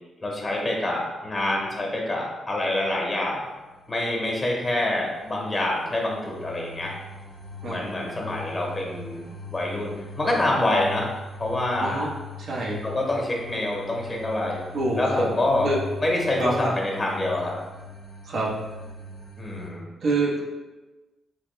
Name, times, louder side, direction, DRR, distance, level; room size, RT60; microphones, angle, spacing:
voice 1, 0.2-3.4 3.9-6.9 7.7-11.1 11.4-12.1 12.8-14.6 15.0-15.7 16.0-17.6 19.4-19.9, left 1 dB, 30° left, -1 dB, 1.2 m, -26 dB
sound 1, 3.4-19.7, left 4 dB, 60° left, 0.9 m, -41 dB
voice 2, 12.5-12.8 14.7-15.2 15.6-15.8 16.4-16.7 18.3-18.5 20.0-20.4, right 2 dB, 70° right, -4 dB, 0.9 m, -25 dB
3.5 x 3.0 x 3.3 m, 1.2 s
supercardioid pair, 60°, 0 cm